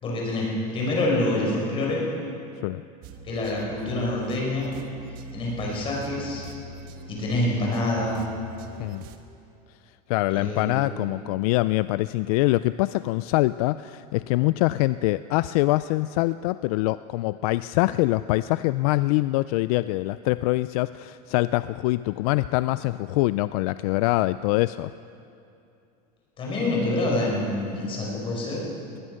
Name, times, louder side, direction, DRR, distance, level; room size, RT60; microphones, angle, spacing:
voice 1, 0.0-2.1 3.2-4.7 5.3-6.5 7.1-8.2 10.3-10.8 26.4-28.6, left 2 dB, 25° left, -2 dB, 5.2 m, -26 dB
sound 1, 3.0-9.2, right 2 dB, 45° right, 1.4 m, -42 dB
voice 2, 10.1-24.9, left 19 dB, 70° left, 15 dB, 0.4 m, -24 dB
20.5 x 20.0 x 6.5 m, 2.6 s
cardioid pair, 170°, 20 cm